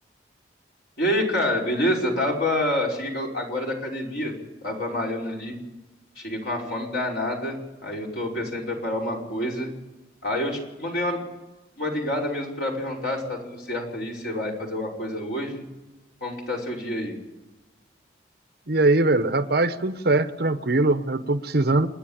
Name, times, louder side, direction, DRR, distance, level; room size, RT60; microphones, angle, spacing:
voice 1, 1.0-4.3 4.6-5.6 6.2-9.7 10.2-11.2 11.8-15.6 16.2-17.1, left 1 dB, 60° left, -2 dB, 5.3 m, -27 dB
voice 2, 18.7-21.9, right 2 dB, 60° right, 10 dB, 1.0 m, -21 dB
29.5 x 10.0 x 8.8 m, 1.1 s
head